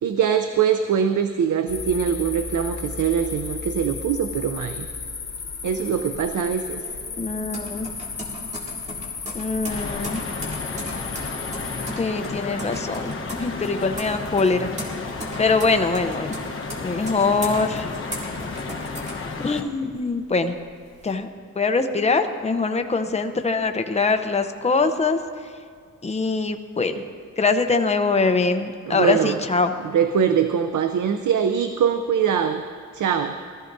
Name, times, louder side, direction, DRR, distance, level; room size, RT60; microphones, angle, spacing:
voice 1, 0.0-4.9 5.6-6.8 28.9-29.4 29.8-32.6 32.9-33.4, right 7 dB, 75° right, 8 dB, 0.6 m, -22 dB
sound 1, 1.7-11.9, left 5 dB, 60° left, 2.4 m, -34 dB
sound 2, 6.1-19.9 20.3-21.1, equal, 20° right, 2.3 m, -37 dB
voice 2, 7.2-7.9 9.3-10.2 12.0-13.1 13.4-14.7 15.4-16.4 16.8-17.9 19.4-20.6 21.0-21.3 21.6-25.2 26.0-27.0 27.4-29.7, left 4 dB, 20° left, 7 dB, 0.7 m, -23 dB
sound 3, 9.7-19.6, left 4 dB, 45° left, 1.1 m, -33 dB
20.0 x 13.5 x 2.7 m, 2.1 s
wide cardioid pair, 115°, 30 cm